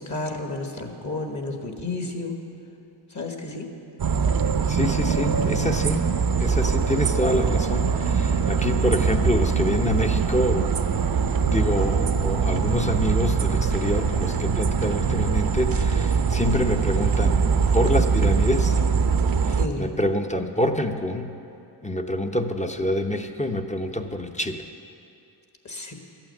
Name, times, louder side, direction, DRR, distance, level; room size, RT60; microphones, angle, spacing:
voice 1, 0.0-2.4 3.1-3.7 19.6-19.9 25.6-25.9, left 2 dB, 40° left, 3 dB, 1.7 m, -31 dB
sound 1, 4.0-19.7, right 5 dB, 50° right, 0.7 m, -22 dB
voice 2, 4.7-6.1 6.4-10.7 11.5-17.4 17.7-18.7 19.5-21.3 21.8-24.6, left 1 dB, 15° left, 5 dB, 0.8 m, -26 dB
12.5 x 8.9 x 7.9 m, 2.7 s
cardioid pair, 65°, 44 cm